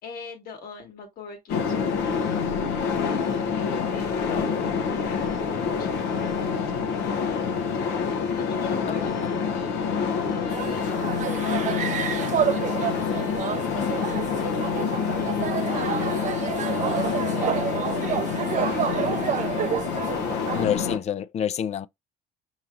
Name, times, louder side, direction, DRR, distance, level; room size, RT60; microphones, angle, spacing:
voice 1, 0.0-2.2 2.6-6.4 6.8-7.9 8.3-9.8 10.3-15.7 16.4-17.7 17.9-19.9, left 5 dB, 60° left, 1.6 m, -44 dB
sound 1, 1.5-21.0, left 6 dB, 85° left, 0.9 m, -27 dB
voice 2, 4.3-4.7 8.9-9.5 14.0-14.4 20.5-21.9, left 9 dB, 40° left, 0.4 m, -30 dB
sound 2, 10.5-20.7, right 9 dB, 45° right, 0.5 m, -29 dB
5.6 x 3.1 x 2.5 m
cardioid pair, 110°, 17 cm